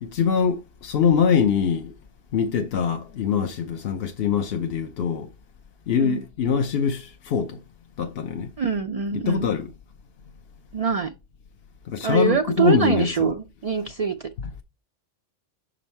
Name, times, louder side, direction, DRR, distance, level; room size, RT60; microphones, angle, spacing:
voice 1, 0.0-1.9 2.3-5.3 5.9-7.6 8.0-8.5 9.3-9.7 11.9-13.3, left 7 dB, 60° left, 0.8 m, -23 dB
voice 2, 8.6-9.5 10.7-11.1 12.0-14.3, right 5 dB, 60° right, 0.4 m, -24 dB
6.1 x 5.2 x 4.3 m
omnidirectional pair, 1.3 m